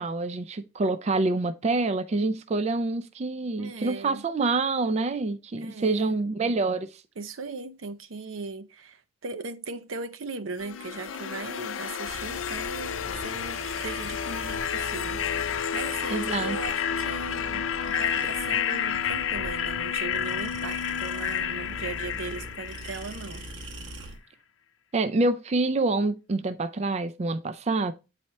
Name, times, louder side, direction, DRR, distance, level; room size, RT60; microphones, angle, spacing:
voice 1, 0.0-7.0 16.1-16.6 24.9-27.9, right 3 dB, 35° right, 0.4 m, -27 dB
voice 2, 3.6-4.2 5.6-6.2 7.2-23.5 23.7-24.2, right 3 dB, 85° right, 0.7 m, -38 dB
sound 1, 10.6-23.5, left 8 dB, 80° left, 0.5 m, -30 dB
sound 2, 12.0-24.2, right 1 dB, 65° right, 1.0 m, -42 dB
9.0 x 4.2 x 3.2 m
head